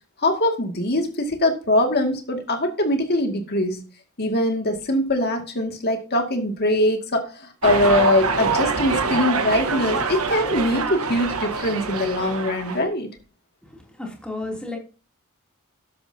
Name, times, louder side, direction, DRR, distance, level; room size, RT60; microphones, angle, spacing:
voice 1, 0.2-3.8 4.2-13.1, left 1 dB, 45° left, 4 dB, 2.3 m, -22 dB
sound 1, 7.6-12.8, right 4 dB, 75° right, 1.4 m, -25 dB
voice 2, 13.7-14.8, left 2 dB, 5° left, -1 dB, 3.1 m, -33 dB
12.5 x 11.0 x 2.9 m, 0.35 s
head